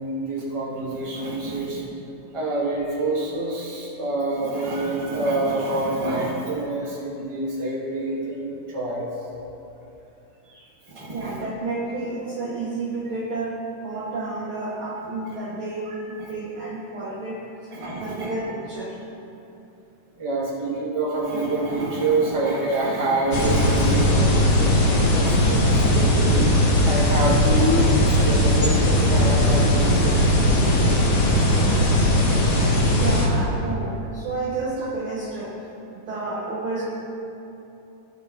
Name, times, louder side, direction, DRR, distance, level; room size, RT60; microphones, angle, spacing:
voice 1, 0.0-1.8 2.3-9.1 10.4-11.4 15.8-16.3 17.7-18.3 20.2-30.5 32.3-32.7, right 2 dB, 20° right, -6 dB, 0.9 m, -27 dB
voice 2, 11.1-19.0 29.8-30.1 32.9-36.8, right 3 dB, 85° right, -4 dB, 1.1 m, -31 dB
sound 1, 23.3-33.3, left 1 dB, 80° left, 0.7 m, -19 dB
17.5 x 6.6 x 3.1 m, 2.9 s
omnidirectional pair, 3.6 m